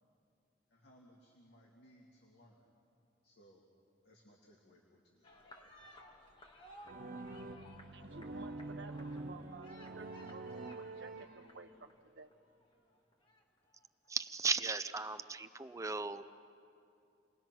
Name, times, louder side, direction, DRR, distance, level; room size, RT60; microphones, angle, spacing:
voice 1, 0.7-2.7 3.2-3.6 4.0-5.3, equal, 65° left, 2.5 m, -63 dB
sound 1, 5.2-14.1, left 1 dB, 30° left, 2.3 m, -58 dB
sound 2, 6.9-11.8, right 2 dB, 50° right, 0.7 m, -46 dB
voice 2, 7.9-10.4 10.7-12.3, right 3 dB, 75° right, 1.0 m, -53 dB
voice 3, 14.1-16.3, right 4 dB, 15° right, 0.5 m, -36 dB
29.0 x 21.0 x 6.1 m
head